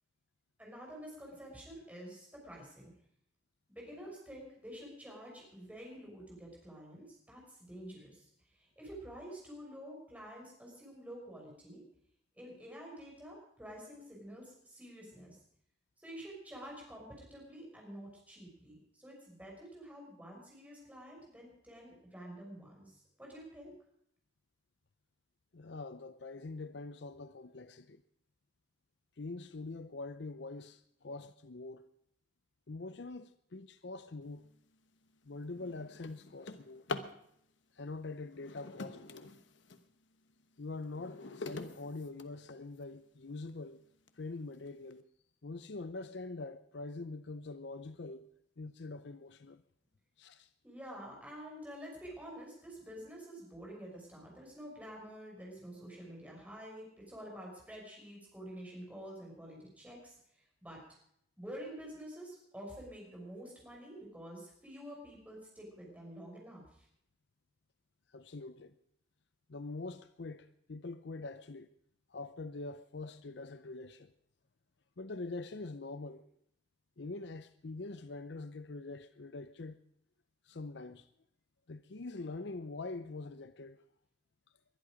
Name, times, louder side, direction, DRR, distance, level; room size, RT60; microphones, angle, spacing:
voice 1, 0.6-2.9 3.7-11.8 12.4-15.4 16.0-23.7 50.6-60.8 61.4-66.9, equal, 10° right, 6.0 m, -49 dB
voice 2, 25.5-28.0 29.2-31.9 32.7-34.5 35.3-36.9 37.7-39.3 40.6-43.8 44.2-45.0 45.4-48.3 48.6-49.6 50.2-50.5 68.1-68.7 69.5-71.7 72.1-74.1 75.0-76.2 77.0-79.8 80.5-81.1 81.7-83.8, left 3 dB, 65° left, 0.6 m, -44 dB
Drawer open or close, 34.5-34.7 35.2-37.2 38.3-39.9 40.4-42.8 43.5-43.6 44.1-44.2 44.5-44.9, left 3 dB, 80° left, 1.2 m, -45 dB
21.5 x 11.5 x 5.1 m
head